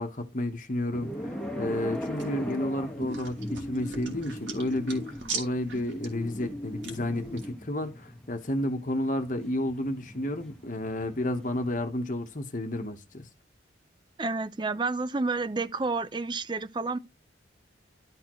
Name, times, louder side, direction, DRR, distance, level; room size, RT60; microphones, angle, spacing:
voice 1, 0.0-13.3, left 1 dB, 45° left, 1.1 m, -31 dB
sound 1, 0.9-11.9, equal, 5° left, 1.3 m, -38 dB
sound 2, 1.7-7.5, right 5 dB, 80° right, 2.8 m, -42 dB
voice 2, 14.2-17.0, right 3 dB, 25° right, 0.5 m, -30 dB
12.5 x 4.3 x 3.1 m
head